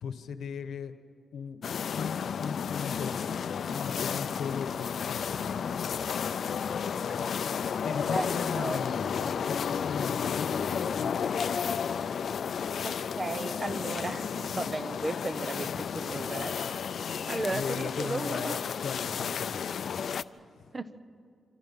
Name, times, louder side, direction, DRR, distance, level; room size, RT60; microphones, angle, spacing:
voice 1, 0.0-0.9 1.3-1.6 1.9-6.0 7.7-12.0 17.5-20.0 20.5-20.7, left 6 dB, 80° left, 10 dB, 1.2 m, -38 dB
sound 1, 1.6-20.2, left 7 dB, 60° left, 0.5 m, -32 dB
voice 2, 12.8-16.8 17.3-18.6 20.7-20.9, right 2 dB, 20° right, 12 dB, 0.8 m, -35 dB
27.0 x 25.5 x 5.6 m, 2.3 s
wide cardioid pair, 145°, 0 cm